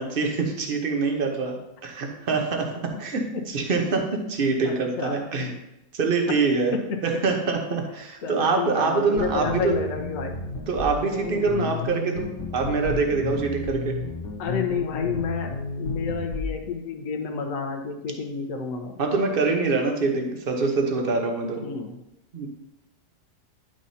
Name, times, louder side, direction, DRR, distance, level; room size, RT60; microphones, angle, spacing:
voice 1, 0.0-1.6 1.8-2.7 3.0-5.5 5.9-6.7 7.0-9.8 10.7-14.0 19.0-21.6 22.3-22.5, right 4 dB, 35° right, 2 dB, 1.0 m, -25 dB
voice 2, 3.1-3.5 4.6-5.3 6.4-7.0 8.2-10.3 11.5-11.7 14.4-19.0 21.6-22.0, left 5 dB, 55° left, 3 dB, 1.2 m, -30 dB
sound 1, 9.2-16.6, left 3 dB, 80° left, 1.6 m, -32 dB
10.5 x 6.3 x 2.8 m, 0.89 s
omnidirectional pair, 1.9 m